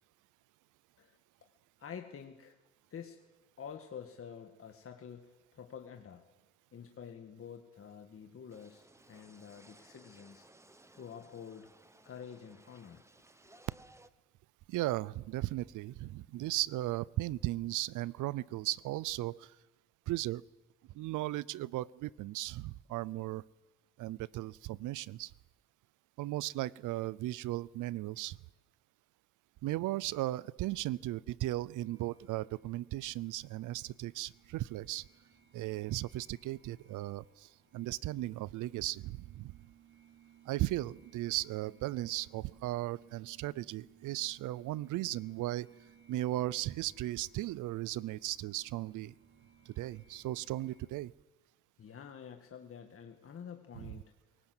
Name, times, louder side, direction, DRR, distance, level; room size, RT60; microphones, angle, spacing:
voice 1, 1.8-2.6 2.9-3.2 3.6-6.3 6.7-10.5 10.9-11.7 12.0-13.0 13.4-13.6 51.8-54.1, left 7 dB, 45° left, 4 dB, 1.8 m, -48 dB
sound 1, 8.5-14.1, right 1 dB, 10° right, 1.2 m, -61 dB
voice 2, 14.7-19.5 20.1-20.4 20.9-23.4 24.0-25.3 26.2-28.4 29.6-35.1 35.5-39.5 40.5-45.7 46.1-49.1 49.7-51.1 53.8-53.9, right 16 dB, 85° right, 23 dB, 0.6 m, -36 dB
sound 2, 31.7-50.8, right 8 dB, 35° right, 4.9 m, -63 dB
23.0 x 18.0 x 7.9 m, 1.1 s
cardioid pair, 90°, 30 cm